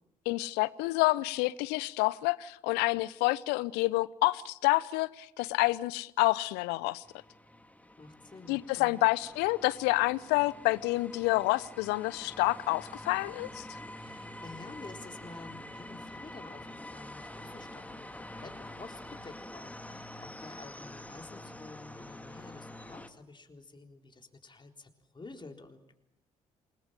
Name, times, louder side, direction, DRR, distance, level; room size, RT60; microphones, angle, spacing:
voice 1, 0.3-7.0 8.5-13.7, left 21 dB, 70° left, 0.8 m, -28 dB
sound 1, 7.0-23.1, left 1 dB, 10° left, 2.2 m, -47 dB
voice 2, 8.0-9.1 14.0-25.9, left 3 dB, 25° left, 4.0 m, -50 dB
28.0 x 20.5 x 7.7 m
figure-of-eight pair, 45°, 18 cm